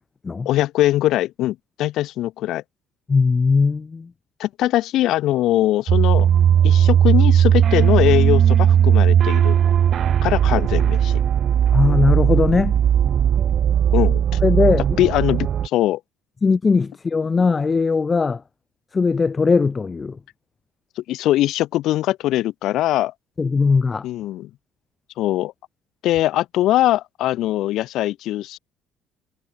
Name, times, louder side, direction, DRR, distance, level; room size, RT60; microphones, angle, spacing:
voice 1, 0.4-2.6 4.4-6.3 6.6-9.6 10.2-11.2 13.9-14.2 15.0-16.0 21.0-23.1 24.0-24.5 25.2-25.5 26.0-28.6, left 14 dB, 70° left, 4.4 m, -21 dB
voice 2, 3.1-4.1 11.7-12.8 14.4-14.9 16.4-18.4 18.9-20.2 23.4-24.1, left 4 dB, 25° left, 4.4 m, -19 dB
sound 1, 5.9-15.7, right 9 dB, 50° right, 1.0 m, -17 dB
supercardioid pair, 90°, 0 cm